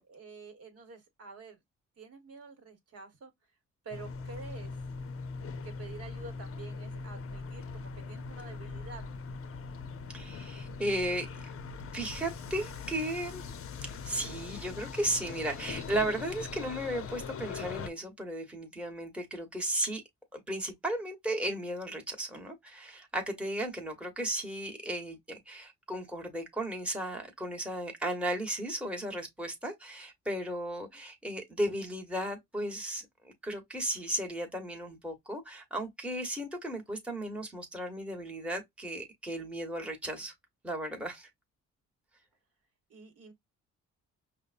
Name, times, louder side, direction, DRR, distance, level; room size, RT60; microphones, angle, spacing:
voice 1, 0.1-1.6 2.0-3.3 3.8-4.8 5.6-9.1 42.9-43.3, right 4 dB, 55° right, 1.3 m, -48 dB
sound 1, 3.9-17.9, left 4 dB, 50° left, 0.6 m, -41 dB
voice 2, 10.1-11.5 11.9-13.4 13.8-20.0 20.3-40.3 40.6-41.3, right 1 dB, 5° right, 1.2 m, -35 dB
5.2 x 2.2 x 2.5 m
cardioid pair, 90°, 30 cm